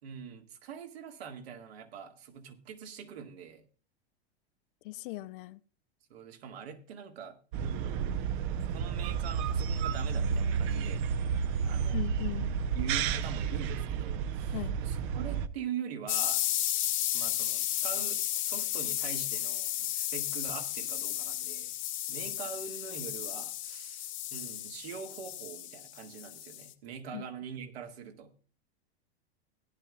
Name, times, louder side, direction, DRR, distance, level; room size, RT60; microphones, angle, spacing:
voice 1, 0.0-3.6 6.1-8.0 8.7-11.1 11.7-12.0 12.7-16.4 17.1-21.7 22.1-28.3, right 7 dB, 70° right, 2.0 m, -43 dB
voice 2, 4.8-5.6 11.9-12.5 14.5-14.8 27.1-27.2, left 17 dB, 55° left, 0.6 m, -38 dB
sound 1, 7.5-15.5, right 6 dB, 50° right, 0.9 m, -31 dB
sound 2, 16.1-26.7, left 13 dB, 40° left, 1.2 m, -33 dB
18.0 x 10.5 x 2.3 m
hypercardioid pair, 100°, 32 cm